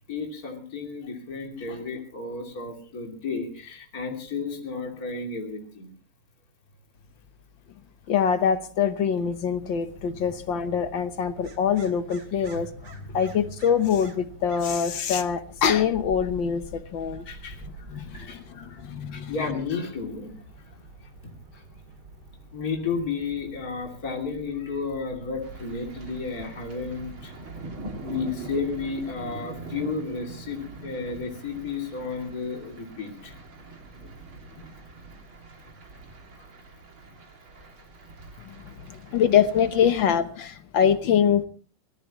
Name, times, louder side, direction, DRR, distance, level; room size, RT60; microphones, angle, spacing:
voice 1, 0.1-5.9 10.2-10.3 12.4-12.6 12.9-13.2 17.2-18.8 19.1-20.3 21.5-21.6 22.5-27.5 28.0-33.3, left 4 dB, 45° left, 3.3 m, -33 dB
voice 2, 8.1-12.7 13.1-17.2 17.9-19.3 38.8-41.5, left 8 dB, 65° left, 1.7 m, -24 dB
sound 1, 9.2-29.1, right 2 dB, 50° right, 2.8 m, -47 dB
sound 2, 25.4-40.1, right 3 dB, 75° right, 3.6 m, -43 dB
25.0 x 18.0 x 3.1 m
omnidirectional pair, 2.3 m